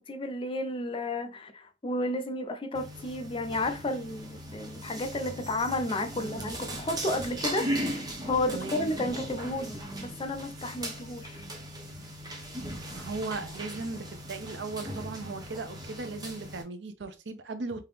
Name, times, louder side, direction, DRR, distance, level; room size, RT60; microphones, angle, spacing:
voice 1, 0.0-11.4, left 1 dB, 30° left, 0.6 m, -32 dB
sound 1, 2.7-16.6, equal, 25° right, 0.9 m, -38 dB
voice 2, 6.2-6.5 8.5-8.9 12.9-17.8, right 3 dB, 85° right, 0.6 m, -37 dB
3.7 x 2.9 x 3.3 m
head